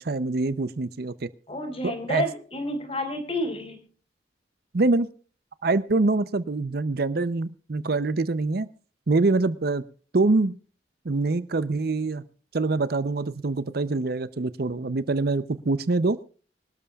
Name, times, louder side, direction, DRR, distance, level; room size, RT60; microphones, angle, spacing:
voice 1, 0.0-1.3 1.8-2.2 4.7-5.1 5.6-8.7 9.1-9.8 10.1-10.5 11.0-12.2 12.5-16.2, right 3 dB, 55° right, 15 dB, 0.6 m, -25 dB
voice 2, 1.5-3.8, left 1 dB, 30° left, 6 dB, 4.6 m, -30 dB
25.0 x 12.5 x 2.4 m, 0.40 s
head